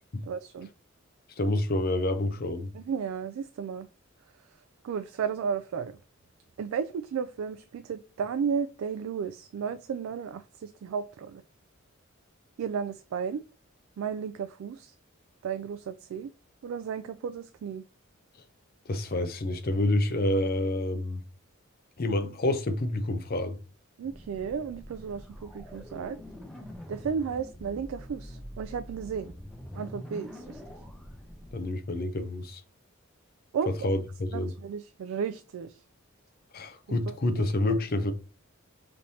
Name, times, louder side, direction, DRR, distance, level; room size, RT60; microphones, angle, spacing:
voice 1, 0.3-0.7 2.7-3.9 4.8-5.9 6.6-11.4 12.6-13.4 14.0-14.9 15.4-16.3 16.6-17.8 24.0-26.2 26.9-29.3 29.7-30.6 33.5-33.9 34.3-35.8 37.1-37.2 37.7-37.8, right 6 dB, 80° right, 0.3 m, -33 dB
voice 2, 1.4-2.7 18.9-21.2 22.0-23.6 31.5-32.6 33.7-34.5 36.5-38.1, left 1 dB, 45° left, 0.5 m, -28 dB
sound 1, 24.0-31.7, equal, 5° left, 0.7 m, -44 dB
5.3 x 3.2 x 2.7 m
head